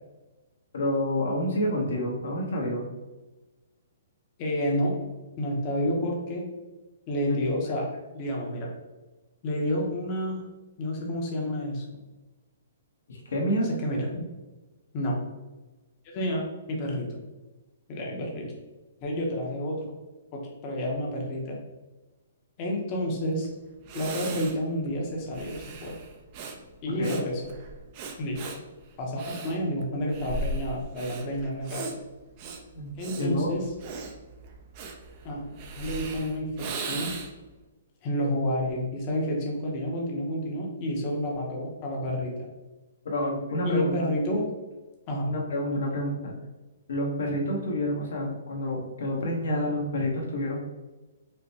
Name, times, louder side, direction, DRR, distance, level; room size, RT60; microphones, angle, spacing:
voice 1, 0.7-2.9 7.3-7.4 7.7-7.8 13.1-13.7 27.0-27.2 32.7-32.9 33.2-33.5 43.0-44.1 45.2-46.3 46.9-50.6, left 1 dB, 70° left, -2 dB, 1.1 m, -28 dB
voice 2, 4.4-5.0 5.4-6.4 7.1-7.9 8.1-8.7 9.4-10.4 10.8-11.8 13.8-14.1 14.9-15.2 16.0-17.2 17.9-18.5 19.0-19.8 20.3-21.6 22.6-23.5 23.9-26.0 26.8-27.5 28.2-28.4 29.0-31.9 33.0-33.6 35.2-35.4 35.8-37.1 38.0-42.5 43.6-44.5 45.1-45.3, equal, 25° left, -1 dB, 0.7 m, -30 dB
Breathing, 23.4-23.5 23.9-37.5, right 3 dB, 25° right, 0.4 m, -38 dB
4.9 x 2.1 x 2.8 m, 1.2 s
hypercardioid pair, 170°, 0 cm